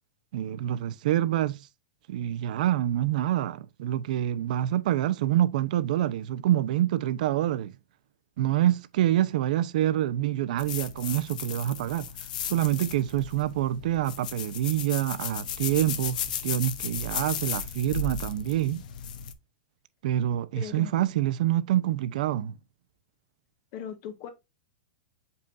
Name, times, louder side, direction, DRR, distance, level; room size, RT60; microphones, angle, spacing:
voice 1, 0.3-1.6 2.1-7.7 8.4-12.1 12.5-18.8 20.0-22.5, right 12 dB, 65° right, 0.7 m, -26 dB
sound 1, 10.6-19.3, left 7 dB, 65° left, 1.0 m, -35 dB
voice 2, 20.5-21.1 23.7-24.3, left 8 dB, 40° left, 1.5 m, -39 dB
6.9 x 5.4 x 2.6 m
supercardioid pair, 155°, 5 cm